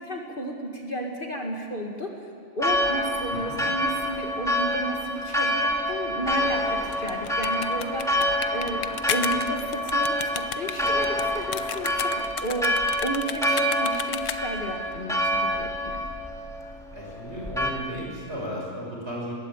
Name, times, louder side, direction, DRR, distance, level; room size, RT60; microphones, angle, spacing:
voice 1, 0.0-8.2 8.5-16.0, right 1 dB, 40° left, 1 dB, 2.1 m, -33 dB
Church bell, 2.6-17.7, equal, ahead, 2.5 m, -27 dB
sound 1, 6.8-14.7, left 9 dB, 65° left, 1.1 m, -34 dB
voice 2, 16.9-19.3, equal, 50° right, -2 dB, 6.8 m, -35 dB
21.0 x 17.0 x 8.9 m, 2.6 s
omnidirectional pair, 1.4 m